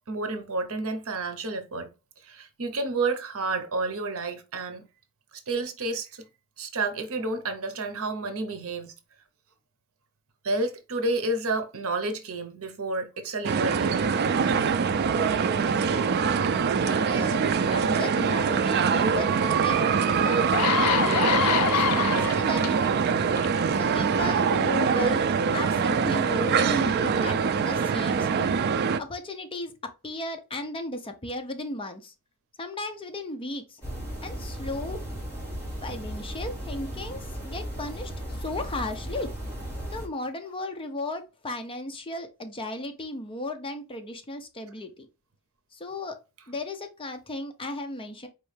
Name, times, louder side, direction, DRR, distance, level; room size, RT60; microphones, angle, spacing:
voice 1, 0.1-1.9 2.2-4.8 5.5-6.3 6.6-8.9 10.4-14.1, right 2 dB, 65° right, 0.8 m, -30 dB
sound 1, 13.4-29.0, right 6 dB, 45° right, 0.3 m, -24 dB
voice 2, 15.1-16.3 16.8-17.4 17.7-23.2 23.7-25.2 25.5-28.5 29.0-32.1 32.6-33.8 34.2-35.0 35.8-39.3 39.9-45.1 45.7-46.2 46.5-48.3, left 2 dB, 25° left, 0.6 m, -36 dB
sound 2, 19.8-19.9 20.3-22.7 23.4-23.6, left 9 dB, 85° left, 0.4 m, -25 dB
sound 3, 33.8-40.1, equal, 10° left, 2.3 m, -36 dB
4.4 x 3.1 x 3.2 m
head